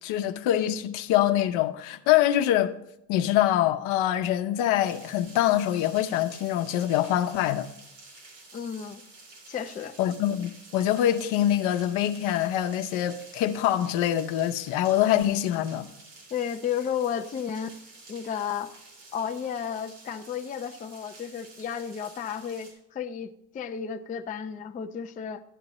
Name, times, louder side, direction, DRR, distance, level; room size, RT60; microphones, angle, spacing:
voice 1, 0.0-2.7 3.1-7.7 10.0-15.9, left 12 dB, 75° left, 0.9 m, -24 dB
sound 1, 4.8-22.7, right 3 dB, 85° right, 4.4 m, -50 dB
voice 2, 8.5-9.0 9.5-9.9 16.3-17.7 18.1-18.8 19.1-25.4, left 8 dB, 20° left, 0.3 m, -33 dB
12.0 x 9.6 x 3.0 m
supercardioid pair, 100°, 48 cm